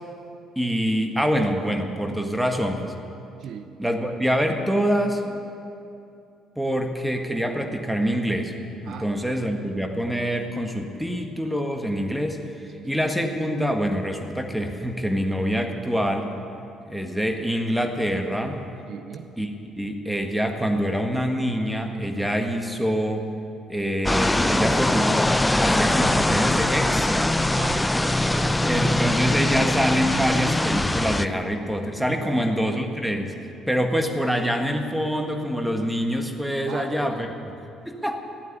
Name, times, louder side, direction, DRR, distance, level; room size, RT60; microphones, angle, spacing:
voice 1, 0.6-2.9 3.8-5.2 6.6-8.5 8.8-16.3 16.9-18.7 19.4-19.5 19.8-23.3 23.7-25.1 25.6-27.4 28.6-33.3 33.7-37.3 37.8-38.2, equal, 5° right, 4 dB, 1.8 m, -25 dB
voice 2, 3.4-3.7 8.8-9.4 12.7-12.9 18.9-19.3 24.5-24.7 27.5-28.8 32.2-32.5 36.7-37.3, right 7 dB, 60° right, 9 dB, 0.6 m, -40 dB
sound 1, 24.0-31.2, left 1 dB, 10° left, 0.6 m, -22 dB
14.5 x 9.2 x 8.5 m, 2.6 s
hypercardioid pair, 50°, 0 cm